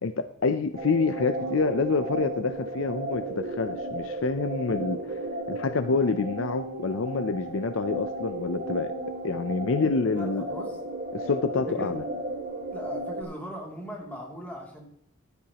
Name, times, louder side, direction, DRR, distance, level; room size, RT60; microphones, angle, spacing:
voice 1, 0.0-5.2 5.5-8.9 9.2-10.5 11.1-12.0, left 4 dB, 70° left, 11 dB, 0.5 m, -27 dB
sound 1, 0.7-13.2, right 2 dB, 40° right, 1.8 m, -34 dB
voice 2, 10.1-10.8 11.7-11.9 12.7-14.9, equal, 10° left, -2 dB, 2.7 m, -39 dB
15.0 x 11.5 x 2.9 m, 0.71 s
head